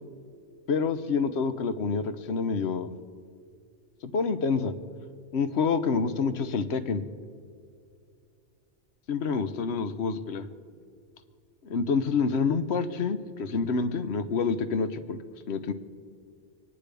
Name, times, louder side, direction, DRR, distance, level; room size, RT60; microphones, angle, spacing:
voice 1, 0.7-2.9 4.0-4.7 5.3-7.0 9.1-10.4 11.7-15.2 15.5-15.7, left 5 dB, 65° left, 10 dB, 1.1 m, -27 dB
26.5 x 9.9 x 3.4 m, 2.4 s
omnidirectional pair, 1.2 m